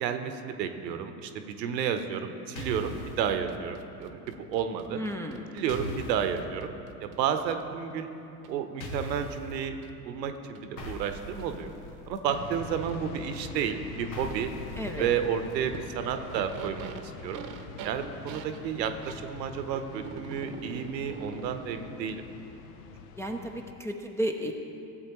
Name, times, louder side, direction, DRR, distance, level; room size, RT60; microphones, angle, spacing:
voice 1, 0.0-5.0 5.5-6.7 7.0-8.1 8.5-11.7 12.1-14.5 15.0-16.9 17.2-17.4 17.8-22.2, right 8 dB, 80° right, 8 dB, 0.8 m, -31 dB
sound 1, 2.6-3.3 5.7-6.4 8.8-9.5 10.8-12.2 14.1-15.5, left 1 dB, 85° left, 1.2 m, -40 dB
sound 2, 3.2-7.6 8.4-8.5 9.8-9.9 10.5-10.6 11.4-11.5 12.9-13.0 13.4-13.6 14.3-14.4 14.9-15.0 15.7-15.9 16.1-19.2 19.9-22.0, right 7 dB, 40° right, 0.8 m, -44 dB
voice 2, 4.9-5.5 14.8-15.1 23.1-24.5, equal, 5° left, 0 dB, 0.4 m, -33 dB
sound 3, 12.3-23.7, left 5 dB, 70° left, 0.8 m, -44 dB
14.5 x 7.7 x 3.0 m, 2.8 s
hypercardioid pair, 80°, 49 cm